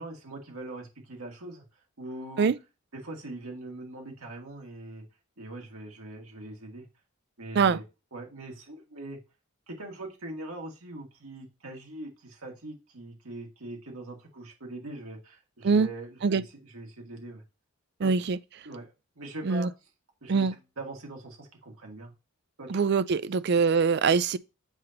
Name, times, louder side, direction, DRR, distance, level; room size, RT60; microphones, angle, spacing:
voice 1, 0.0-1.6 2.0-2.5 2.9-5.0 5.4-6.8 7.4-7.8 8.1-9.2 9.7-17.4 18.0-18.1 18.6-19.7 20.2-20.5 20.8-22.1 22.6-22.8, right 2 dB, 90° right, 2.0 m, -42 dB
voice 2, 18.0-18.4 19.4-19.7 20.3-20.5 22.7-24.4, right 5 dB, 50° right, 0.4 m, -23 dB
8.0 x 2.9 x 5.1 m
head